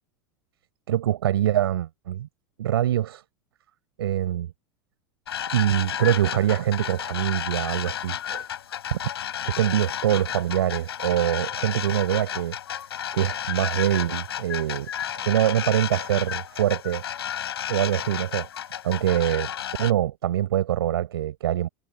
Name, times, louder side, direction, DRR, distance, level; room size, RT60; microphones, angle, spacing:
voice 1, 0.9-2.3 2.6-3.2 4.0-4.5 5.5-8.5 8.9-9.0 9.4-12.6 13.1-14.9 15.2-17.0 17.7-18.5 18.8-19.5 19.8-21.7, right 12 dB, 70° right, 4.8 m, -24 dB
sound 1, 5.3-19.9, left 10 dB, 75° left, 5.8 m, -32 dB
figure-of-eight pair, 85°, 13 cm